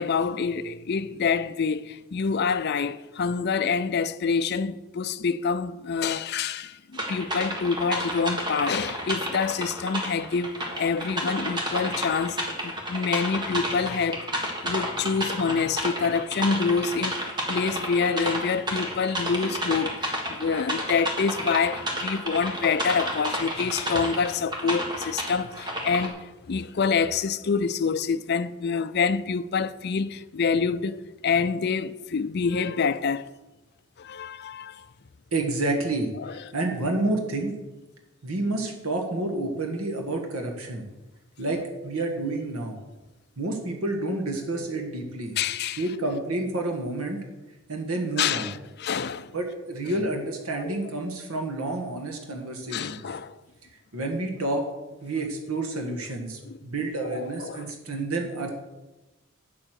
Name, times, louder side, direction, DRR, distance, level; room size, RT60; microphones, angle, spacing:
voice 1, 0.0-33.3 34.0-34.9 36.2-36.3 45.4-45.8 48.2-49.3 50.5-50.9 52.7-53.3 56.4-56.6 57.0-57.7, left 5 dB, 50° left, 0.5 m, -27 dB
sound 1, 6.9-26.1, equal, 20° right, 1.7 m, -31 dB
voice 2, 35.3-36.1 36.5-37.5 38.2-40.9 41.4-42.8 43.4-45.4 45.8-47.2 47.7-48.5 49.3-53.0 53.9-54.6 55.0-58.6, right 2 dB, 90° right, 1.6 m, -29 dB
8.7 x 7.6 x 6.4 m
head